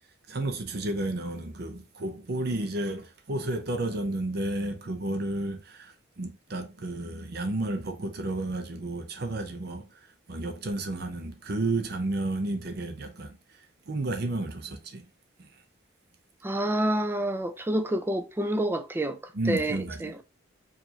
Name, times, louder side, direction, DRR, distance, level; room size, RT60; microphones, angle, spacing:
voice 1, 0.3-15.1 15.4-15.5 19.3-20.2, right 2 dB, 55° right, 0.7 m, -32 dB
voice 2, 16.4-20.2, right 1 dB, 10° right, 0.4 m, -28 dB
4.8 x 2.6 x 2.8 m
head